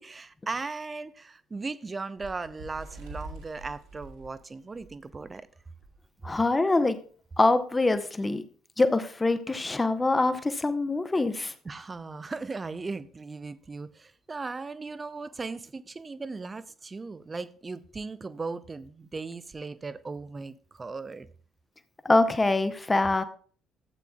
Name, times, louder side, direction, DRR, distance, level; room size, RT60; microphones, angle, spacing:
voice 1, 0.0-5.4 11.6-21.3, right 3 dB, 25° right, 0.6 m, -37 dB
Bird, 2.2-5.4 5.8-6.0 6.3-6.5 7.3-7.4, right 2 dB, 70° right, 2.3 m, -45 dB
voice 2, 6.2-7.0 7.4-8.4 8.8-11.5 22.0-23.2, left 2 dB, 20° left, 0.9 m, -24 dB
14.0 x 8.3 x 2.3 m
figure-of-eight pair, 50°, 0 cm